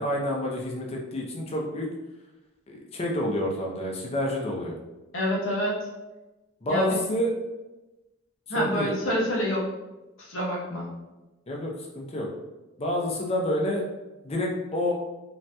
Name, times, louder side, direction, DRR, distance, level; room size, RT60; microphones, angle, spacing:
voice 1, 0.0-1.9 2.7-4.8 6.6-7.3 8.5-8.9 11.5-12.3 12.8-13.8 14.2-14.9, equal, 30° left, -1 dB, 0.5 m, -28 dB
voice 2, 5.1-5.9 6.7-7.0 8.5-9.7 10.2-10.9, equal, 75° left, -3 dB, 0.9 m, -27 dB
3.0 x 2.7 x 2.2 m, 1.1 s
head